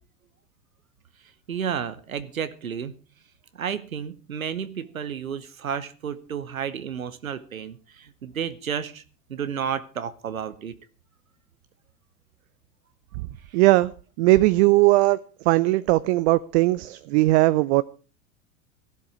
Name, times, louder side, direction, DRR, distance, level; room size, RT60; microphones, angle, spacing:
voice 1, 1.5-2.9 3.6-7.8 8.2-9.0 9.3-10.7, right 8 dB, 90° right, 1.0 m, -31 dB
voice 2, 13.5-13.9 14.2-17.8, right 19 dB, 55° right, 0.6 m, -19 dB
15.0 x 12.0 x 4.9 m
hypercardioid pair, 85°, 40 cm